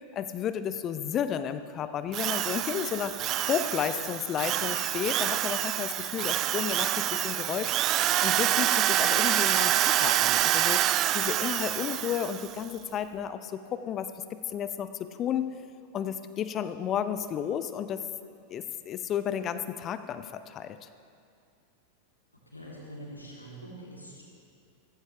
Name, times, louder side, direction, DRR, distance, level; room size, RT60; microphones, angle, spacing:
voice 1, 0.2-3.1 3.5-7.7 8.2-10.8 11.1-14.1 14.5-15.6 15.9-18.0 18.5-20.9, left 9 dB, 30° left, 11 dB, 0.7 m, -32 dB
Drill, 2.1-12.5, right 13 dB, 35° right, 0.4 m, -27 dB
voice 2, 22.5-24.2, right 1 dB, 85° left, -4 dB, 3.3 m, -44 dB
16.5 x 15.5 x 3.4 m, 2.4 s
figure-of-eight pair, 90°, 0 cm